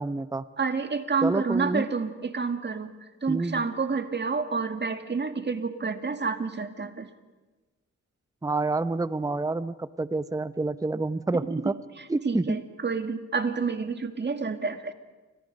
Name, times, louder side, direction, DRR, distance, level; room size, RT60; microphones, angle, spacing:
voice 1, 0.0-0.4 1.2-1.8 3.3-3.6 8.4-11.8 12.1-12.6, right 3 dB, 10° right, 14 dB, 0.7 m, -28 dB
voice 2, 0.6-2.9 3.2-7.1 11.6-11.7 12.2-14.9, right 4 dB, 35° right, 7 dB, 2.1 m, -29 dB
29.0 x 25.5 x 5.3 m, 1.2 s
cardioid pair, 70°, 30 cm